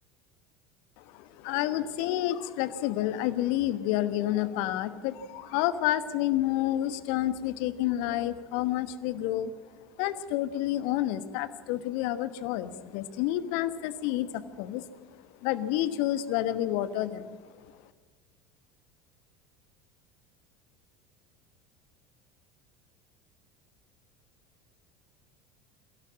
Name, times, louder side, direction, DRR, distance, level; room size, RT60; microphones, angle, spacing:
voice 1, 1.0-9.5 10.0-14.9 15.4-17.4, left 13 dB, 55° left, 14 dB, 1.2 m, -29 dB
22.0 x 17.0 x 7.4 m, 1.4 s
figure-of-eight pair, 70°, 12 cm